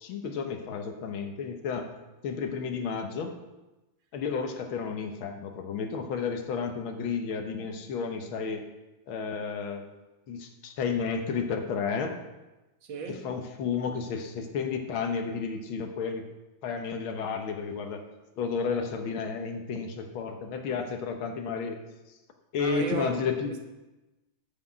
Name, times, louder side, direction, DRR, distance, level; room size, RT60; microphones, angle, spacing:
voice 1, 0.0-1.9 2.2-3.3 4.1-8.6 9.1-9.9 10.3-12.1 13.1-16.3 16.6-18.0 18.4-21.8 22.5-23.5, left 5 dB, 80° left, 1.9 m, -32 dB
voice 2, 12.8-13.3 22.6-23.6, right 6 dB, 75° right, 2.1 m, -36 dB
9.5 x 6.1 x 7.6 m
omnidirectional pair, 2.2 m